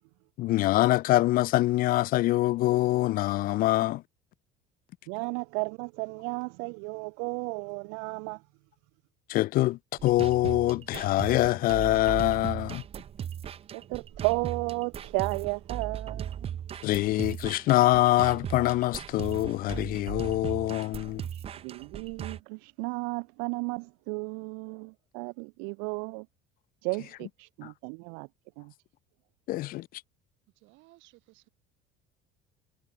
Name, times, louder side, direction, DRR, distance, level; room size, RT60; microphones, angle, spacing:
voice 1, 0.4-4.0 9.3-12.8 16.8-21.2 27.6-27.7 29.5-29.9, left 17 dB, 45° left, 0.5 m, -25 dB
voice 2, 5.1-8.4 13.7-16.6 21.3-26.3 26.8-28.3 28.6-28.7, right 40 dB or more, 85° right, 1.1 m, -34 dB
sound 1, 10.0-22.4, right 9 dB, 30° right, 1.1 m, -38 dB
voice 3, 30.5-31.5, right 22 dB, 65° right, 6.2 m, -58 dB
cardioid pair, 160°, 21 cm